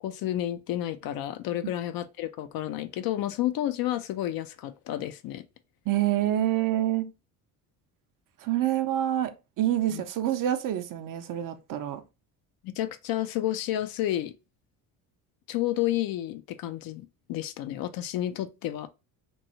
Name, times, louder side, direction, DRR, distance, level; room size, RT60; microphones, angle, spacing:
voice 1, 0.0-5.4 9.9-10.0 12.6-14.3 15.5-18.9, left 13 dB, 55° left, 0.5 m, -31 dB
voice 2, 5.9-7.1 8.4-12.0, right 12 dB, 45° right, 0.5 m, -27 dB
3.0 x 2.6 x 2.8 m
hypercardioid pair, 65°, 45 cm